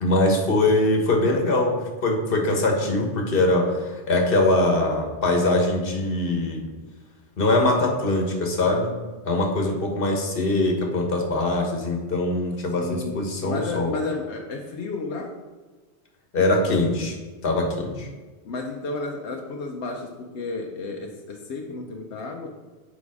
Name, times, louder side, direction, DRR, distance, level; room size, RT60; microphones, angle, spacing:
voice 1, 0.0-6.7 7.4-8.9 9.3-13.9 16.3-17.2 17.4-18.1, left 2 dB, 55° left, 1 dB, 1.5 m, -22 dB
voice 2, 12.8-15.4 18.4-22.5, left 3 dB, 90° left, 2 dB, 1.1 m, -32 dB
7.1 x 5.1 x 4.8 m, 1.3 s
omnidirectional pair, 1.1 m